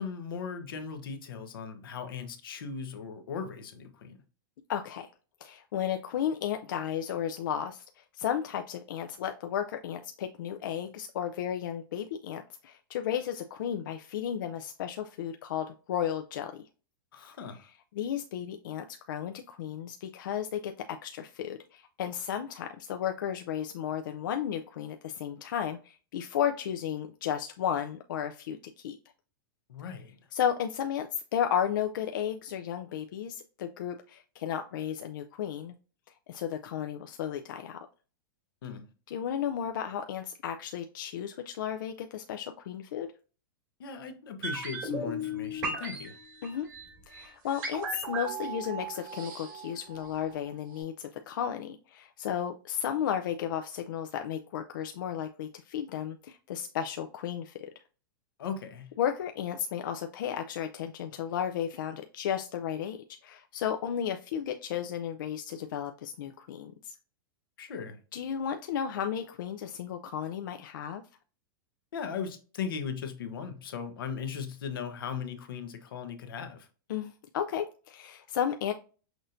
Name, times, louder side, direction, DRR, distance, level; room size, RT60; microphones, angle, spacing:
voice 1, 0.0-4.2 17.1-17.7 29.7-30.2 38.6-38.9 43.8-46.2 58.4-58.9 67.6-68.0 71.9-76.7, left 6 dB, 85° left, 0.9 m, -38 dB
voice 2, 4.7-5.1 5.4-16.6 17.9-29.0 30.3-35.7 36.3-37.9 39.1-43.1 46.4-46.7 47.1-57.7 59.0-67.0 68.1-71.0 76.9-78.7, left 9 dB, 65° left, 0.4 m, -34 dB
sound 1, 44.4-50.5 50.7-50.8, right 1 dB, 30° right, 2.3 m, -37 dB
6.1 x 2.6 x 2.6 m
supercardioid pair, 170°, 12 cm